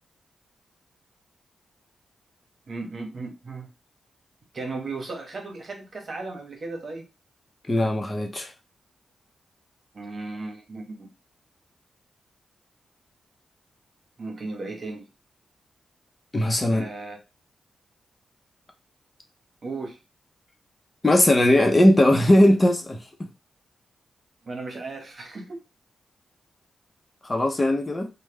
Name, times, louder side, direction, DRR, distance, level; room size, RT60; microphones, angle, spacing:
voice 1, 2.7-3.7 4.5-7.1 9.9-11.1 14.2-15.0 16.7-17.2 19.6-20.0 24.4-25.6, right 3 dB, 55° right, 1.1 m, -35 dB
voice 2, 7.7-8.5 16.3-16.9 21.0-23.3 27.2-28.1, left 1 dB, 30° left, 0.8 m, -19 dB
3.2 x 2.3 x 3.3 m
cardioid pair, 60°, 0 cm